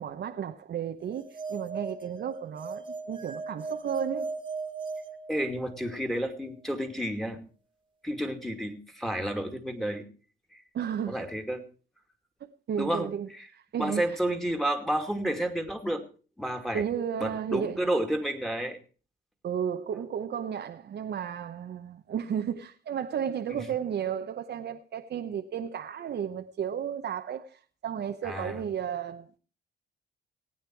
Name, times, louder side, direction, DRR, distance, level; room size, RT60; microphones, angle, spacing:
voice 1, 0.0-4.3 10.7-11.2 12.7-13.3 13.5-14.1 16.7-17.8 19.4-29.4, right 8 dB, 60° right, 0.9 m, -33 dB
sound 1, 1.1-5.9, right 4 dB, 25° right, 1.6 m, -38 dB
voice 2, 5.3-7.4 8.0-10.1 10.5-10.6 11.1-11.6 12.8-13.5 13.8-16.0 16.4-16.8 17.2-18.8 23.5-23.7 28.2-28.6, right 1 dB, ahead, 2.4 m, -31 dB
18.5 x 8.9 x 4.6 m
cardioid pair, 90°, 20 cm